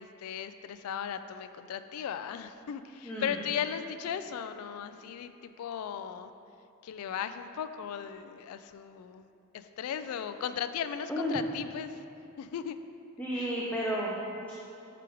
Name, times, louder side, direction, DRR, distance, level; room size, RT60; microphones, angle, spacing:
voice 1, 0.0-6.3 6.8-9.3 9.5-12.0 12.4-12.8 13.3-13.5, left 8 dB, 80° left, 13 dB, 0.3 m, -37 dB
voice 2, 3.0-3.4 11.1-11.4 13.2-14.2 14.5-14.6, equal, 5° left, -5 dB, 0.5 m, -32 dB
5.0 x 4.7 x 4.6 m, 2.7 s
head